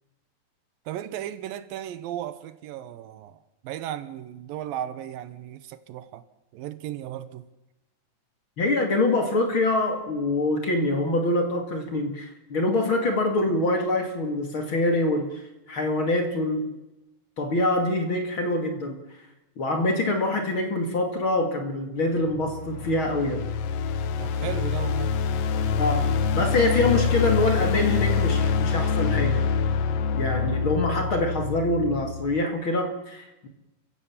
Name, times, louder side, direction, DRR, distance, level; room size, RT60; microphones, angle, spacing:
voice 1, 0.9-6.2 6.5-7.4 24.2-25.1, right 11 dB, 80° right, 2.6 m, -35 dB
voice 2, 8.6-16.8 17.4-19.0 19.6-23.5 25.8-29.5 30.1-33.5, left 2 dB, 40° left, 2.6 m, -25 dB
sound 1, 22.2-32.4, left 5 dB, 80° left, 1.4 m, -25 dB
30.0 x 16.0 x 7.2 m
omnidirectional pair, 4.2 m